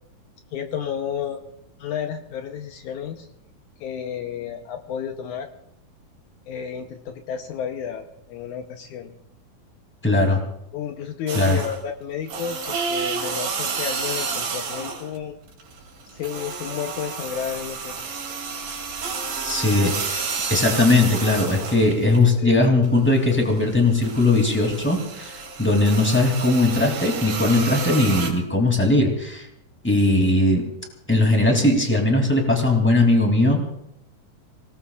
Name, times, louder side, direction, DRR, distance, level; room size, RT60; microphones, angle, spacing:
voice 1, 0.5-1.4 1.8-3.3 3.8-5.5 6.5-9.1 10.7-15.4 16.1-18.0 22.4-22.5, left 8 dB, 75° left, 5 dB, 2.0 m, -32 dB
voice 2, 10.0-10.4 11.3-11.6 19.4-20.2 20.5-29.5 29.8-30.6 31.1-33.6, left 2 dB, 5° left, 2 dB, 2.0 m, -19 dB
sound 1, 11.3-11.9 12.3-15.2 15.5-22.2 22.6-28.3, right 5 dB, 70° right, 4.4 m, -30 dB
26.5 x 18.5 x 2.4 m, 0.78 s
omnidirectional pair, 4.2 m